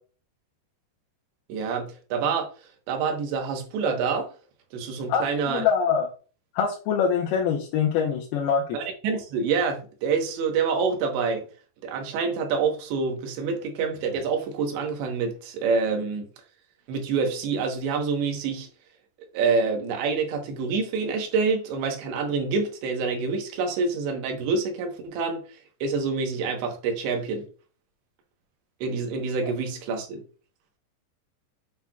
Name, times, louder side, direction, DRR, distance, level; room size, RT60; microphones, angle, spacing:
voice 1, 1.5-2.5 2.9-4.3 4.7-5.7 8.7-11.5 11.8-16.3 16.9-18.7 19.3-25.4 25.8-27.5 28.8-30.2, right 5 dB, 85° right, 3.5 m, -27 dB
voice 2, 5.1-6.1 6.6-8.6, left 7 dB, 75° left, 2.6 m, -24 dB
8.1 x 5.9 x 2.3 m
omnidirectional pair, 5.0 m